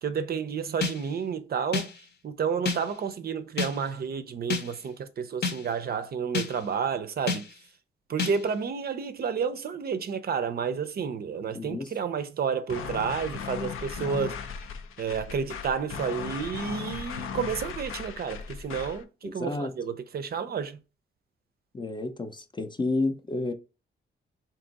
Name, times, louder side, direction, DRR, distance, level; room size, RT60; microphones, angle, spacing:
voice 1, 0.0-1.9 2.2-7.5 8.1-14.4 15.0-20.8, right 6 dB, 50° right, 0.5 m, -30 dB
sound 1, 0.8-1.2 1.7-2.1 2.7-3.0 3.6-3.9 4.5-4.9 5.4-5.8 6.3-6.7 7.3-7.6 8.2-8.5, left 5 dB, 55° left, 0.8 m, -31 dB
voice 2, 11.5-11.9 19.2-19.7 21.7-23.5, left 2 dB, 20° left, 0.5 m, -30 dB
sound 2, 12.7-19.0, left 6 dB, 85° left, 0.5 m, -37 dB
3.5 x 2.8 x 3.9 m
cardioid pair, 105°, 21 cm